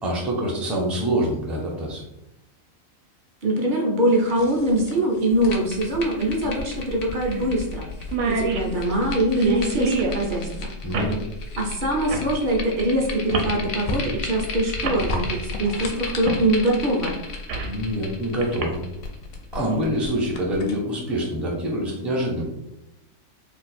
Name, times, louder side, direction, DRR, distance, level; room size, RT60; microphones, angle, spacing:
voice 1, 0.0-2.0 10.8-11.1 17.6-18.8 19.5-22.4, equal, ahead, -3 dB, 0.4 m, -25 dB
voice 2, 3.4-7.9 8.3-10.7 11.6-17.1, right 1 dB, 50° right, 0 dB, 0.6 m, -23 dB
sound 1, 4.1-21.3, left 1 dB, 65° left, 0.5 m, -39 dB
sound 2, 4.3-4.4 6.2-6.3 6.6-6.7 7.2-7.5 7.7-7.8 8.0-10.2 10.9-11.2 12.1-12.3 13.3-13.6 14.4-14.5 14.8-15.0 16.3-16.4 16.9-17.8 18.4-18.6, right 3 dB, 70° right, 0.9 m, -27 dB
sound 3, 5.3-20.6, left 3 dB, 90° left, 1.1 m, -35 dB
2.6 x 2.4 x 4.1 m, 0.87 s
omnidirectional pair, 1.4 m